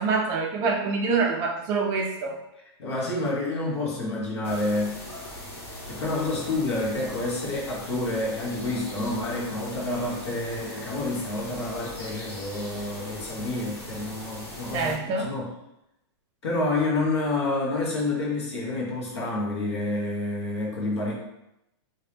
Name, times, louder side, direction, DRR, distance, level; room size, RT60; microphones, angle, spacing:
voice 1, 0.0-2.3 14.7-15.3, right 4 dB, 25° right, 0 dB, 0.3 m, -25 dB
voice 2, 2.8-5.0 5.8-15.5 16.4-21.1, left 2 dB, 75° left, -4 dB, 1.3 m, -28 dB
sound 1, 4.4-14.9, left 1 dB, 15° left, 0.7 m, -40 dB
3.0 x 2.8 x 3.4 m, 0.87 s
supercardioid pair, 160°, 14 cm